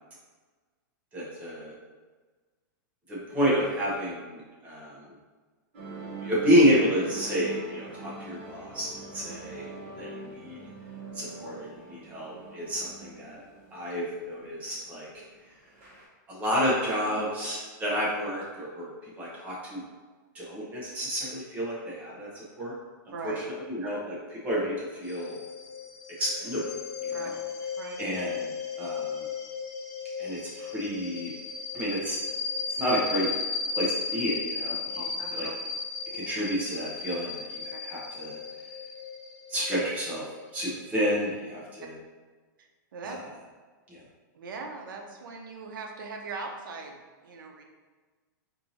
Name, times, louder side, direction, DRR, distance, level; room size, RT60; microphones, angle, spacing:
voice 1, 1.1-1.7 3.1-5.0 6.2-8.9 9.1-9.7 10.0-10.6 11.1-13.4 13.7-15.2 16.3-18.9 19.2-19.8 20.3-22.7 23.2-25.4 26.2-27.3 28.0-28.5 28.8-29.2 30.2-31.3 31.7-32.2 32.8-33.3 33.7-35.0 35.3-35.5 36.1-38.4 39.5-40.2 40.5-41.9 43.0-43.2 43.9-44.0, equal, 15° right, -6 dB, 0.7 m, -30 dB
sound 1, 5.7-16.1, right 3 dB, 40° right, 1.1 m, -43 dB
voice 2, 23.1-23.4 27.1-27.3 27.8-28.1 35.0-35.5 37.7-37.8 42.9-43.2 44.3-47.6, right 4 dB, 80° right, 2 dB, 0.7 m, -40 dB
sound 2, 25.1-41.3, left 5 dB, 50° left, 0.6 m, -35 dB
4.4 x 2.7 x 2.7 m, 1.4 s
supercardioid pair, 175°, 11 cm